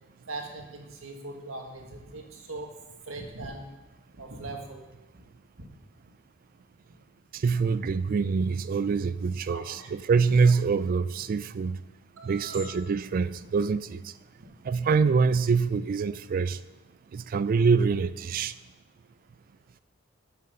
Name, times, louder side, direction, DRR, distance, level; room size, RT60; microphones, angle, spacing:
voice 1, 0.3-2.7 3.1-3.6 4.1-4.8 9.5-9.9 12.2-12.7, right 2 dB, 90° right, 2 dB, 1.6 m, -40 dB
voice 2, 7.3-11.8 12.2-14.1 14.6-16.6 17.1-18.5, right 5 dB, 45° right, 14 dB, 0.3 m, -25 dB
7.0 x 6.6 x 6.6 m, 1.1 s
head